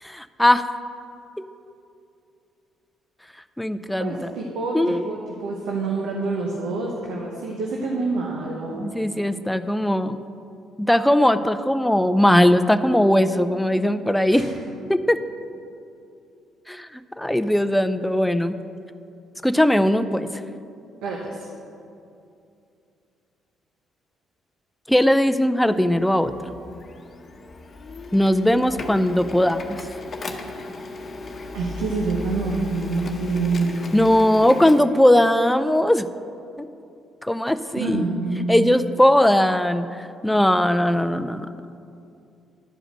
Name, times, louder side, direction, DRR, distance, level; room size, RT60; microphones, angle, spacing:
voice 1, 0.0-0.6 3.6-4.1 4.7-5.0 8.7-10.2 10.8-14.4 14.9-15.2 16.7-18.6 19.4-20.3 24.9-26.3 28.1-29.8 33.9-36.1 36.6-36.7 37.2-38.0 38.5-41.6, left 1 dB, 5° left, 11 dB, 0.5 m, -19 dB
voice 2, 4.0-8.9 14.3-14.5 21.0-21.5 31.5-34.1 37.8-38.8, right 3 dB, 75° right, -1 dB, 1.0 m, -27 dB
Printer, 25.7-34.8, left 2 dB, 45° left, 0.9 m, -36 dB
11.0 x 5.0 x 6.5 m, 2.6 s
hypercardioid pair, 50°, 0 cm